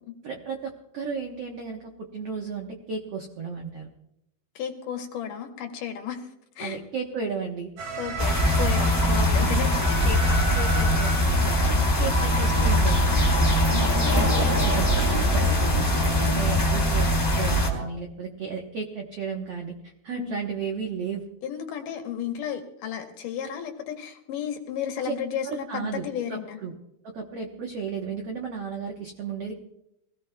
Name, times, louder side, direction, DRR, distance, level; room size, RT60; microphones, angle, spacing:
voice 1, 0.2-3.9 6.6-7.7 9.4-9.7 10.0-10.2 10.5-11.6 12.0-13.6 13.9-15.8 16.2-17.1 17.4-21.2 25.0-25.1 25.4-26.0 26.3-26.7 27.0-29.6, right 5 dB, 75° right, 2 dB, 1.4 m, -34 dB
voice 2, 4.6-6.3 6.6-6.8 8.0-10.0 11.7-11.9 13.7-13.9 16.3-16.5 20.1-20.4 21.4-26.6, left 9 dB, 70° left, 5 dB, 2.4 m, -33 dB
sound 1, 7.8-17.9, right 1 dB, 55° right, 3.5 m, -33 dB
sound 2, 8.2-17.7, left 1 dB, 10° left, 1.6 m, -22 dB
23.5 x 17.0 x 2.3 m, 0.82 s
omnidirectional pair, 4.4 m